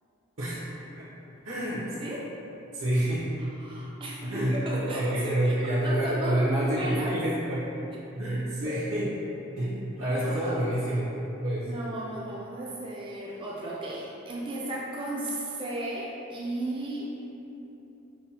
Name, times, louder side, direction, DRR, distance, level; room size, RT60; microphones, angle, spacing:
voice 1, 1.4-1.9 2.7-3.3 4.2-4.6 4.9-7.6 8.1-9.1 9.6-11.8, right 1 dB, 70° right, -10 dB, 0.7 m, -28 dB
voice 2, 3.4-7.2 8.7-8.8 10.1-10.6 11.7-17.1, right 1 dB, 25° right, -4 dB, 0.4 m, -35 dB
5.4 x 2.2 x 2.8 m, 3.0 s
head